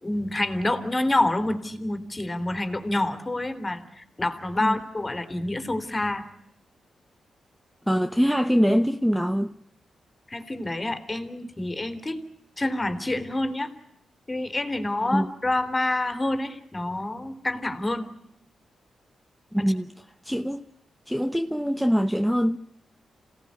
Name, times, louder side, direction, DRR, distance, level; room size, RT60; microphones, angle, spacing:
voice 1, 0.0-6.3 10.3-12.2 12.6-13.7 14.3-18.1 19.6-19.7, left 2 dB, 25° left, 3.3 m, -27 dB
voice 2, 7.9-9.5 15.0-15.3 19.5-19.9 20.2-20.6 21.1-22.6, equal, ahead, 1.0 m, -23 dB
27.5 x 18.0 x 9.7 m
cardioid pair, 70°, 0 cm